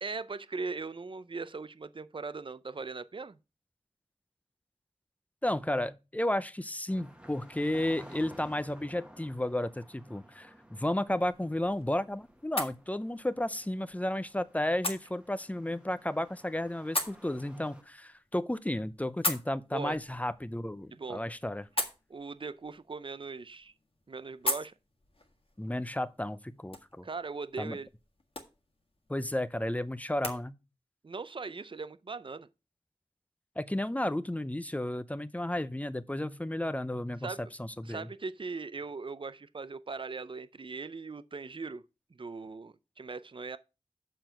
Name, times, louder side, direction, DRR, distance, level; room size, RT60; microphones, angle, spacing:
voice 1, 0.0-3.4 19.7-20.0 20.9-21.2 22.1-23.7 24.1-24.7 27.0-27.9 31.0-32.5 37.2-37.4 37.8-41.8 42.1-43.6, right 4 dB, 50° right, 0.5 m, -39 dB
voice 2, 5.4-21.7 25.6-27.0 27.6-27.8 29.1-30.6 33.6-37.3 37.6-38.1, left 1 dB, 15° left, 0.5 m, -33 dB
sound 1, 6.9-17.8, equal, 10° right, 1.1 m, -55 dB
sound 2, 10.9-30.4, left 2 dB, 60° left, 1.7 m, -41 dB
6.8 x 6.1 x 5.7 m
wide cardioid pair, 70°, 11 cm